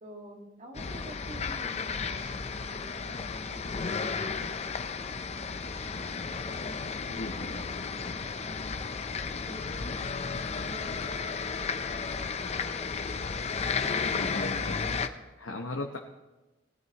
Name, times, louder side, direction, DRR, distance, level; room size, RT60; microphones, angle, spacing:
voice 1, 0.0-4.5 4.8-13.6, equal, 40° right, 1 dB, 1.9 m, -49 dB
sound 1, 0.7-15.1, left 5 dB, 35° left, 0.5 m, -33 dB
sound 2, 5.0-12.0, equal, 10° left, 2.1 m, -54 dB
voice 2, 7.1-7.6 14.0-14.9 15.4-16.0, left 2 dB, 90° left, 2 dB, 0.9 m, -37 dB
19.0 x 12.5 x 2.9 m, 1.1 s
head